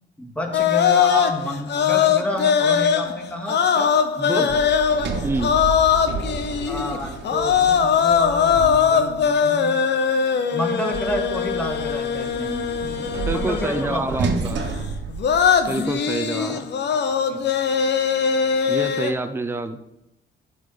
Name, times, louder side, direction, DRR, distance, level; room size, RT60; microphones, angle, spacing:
voice 1, 0.2-3.9 4.3-4.5 6.7-9.7 10.5-14.8 16.3-16.7 17.3-17.4, equal, 5° left, 1 dB, 2.2 m, -30 dB
sound 1, 0.5-7.0 7.2-14.1 15.1-19.1, left 7 dB, 60° left, 1.0 m, -21 dB
voice 2, 4.2-4.5 5.2-5.5 13.3-14.6 15.7-16.6 18.7-19.8, right 2 dB, 10° right, 8 dB, 0.7 m, -27 dB
Sliding door, 4.5-9.3 10.9-15.9, right 4 dB, 65° right, 1.6 m, -31 dB
12.0 x 4.3 x 6.8 m, 0.88 s
cardioid pair, 90°, 20 cm